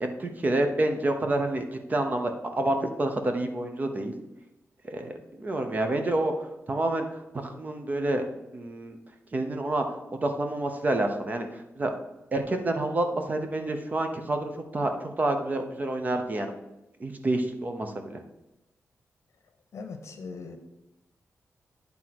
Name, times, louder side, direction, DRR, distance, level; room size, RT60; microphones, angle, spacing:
voice 1, 0.0-4.1 4.9-6.3 6.7-8.2 8.5-9.0 9.3-11.5 11.8-11.9 12.3-16.6 17.0-18.2, right 2 dB, 30° right, 5 dB, 0.9 m, -28 dB
voice 2, 19.7-20.6, left 4 dB, 65° left, 6 dB, 1.0 m, -39 dB
9.3 x 3.7 x 6.0 m, 0.95 s
wide cardioid pair, 140°, 5 cm